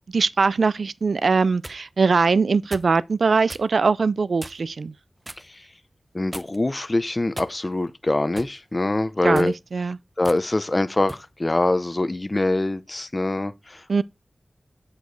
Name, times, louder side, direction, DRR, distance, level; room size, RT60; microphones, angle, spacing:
voice 1, 0.1-4.9 9.2-10.0 13.9-14.0, right 4 dB, 75° right, 0.4 m, -21 dB
sound 1, 1.3-1.8 2.7-3.0 3.5-3.7 4.4-4.7 5.2-5.5 6.3-6.7 7.3-7.9 8.4-8.6 9.2-9.6 10.2-10.4 11.1-11.3, right 1 dB, 20° right, 0.8 m, -39 dB
voice 2, 6.1-9.5 10.2-14.0, left 2 dB, 30° left, 0.6 m, -24 dB
8.3 x 4.8 x 4.0 m
wide cardioid pair, 70°, 0 cm